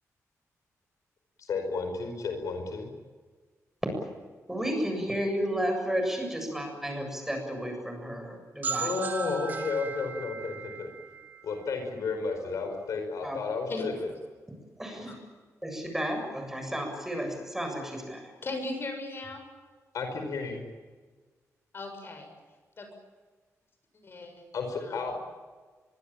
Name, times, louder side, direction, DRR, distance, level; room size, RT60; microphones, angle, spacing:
voice 1, 1.4-2.9 8.8-10.9 11.4-14.1 19.9-20.7 24.5-25.2, left 4 dB, 75° left, 5 dB, 5.0 m, -32 dB
voice 2, 4.5-8.9 13.2-13.4 14.8-15.2 15.6-18.3, equal, 5° right, 3 dB, 7.4 m, -32 dB
sound 1, 8.6-12.3, right 6 dB, 30° right, 1.9 m, -37 dB
voice 3, 18.4-19.4 21.7-22.3 22.8-22.9 24.0-24.4 24.8-25.0, left 2 dB, 40° left, 6 dB, 6.9 m, -37 dB
23.5 x 23.0 x 8.9 m, 1.4 s
wide cardioid pair, 145°, 6 cm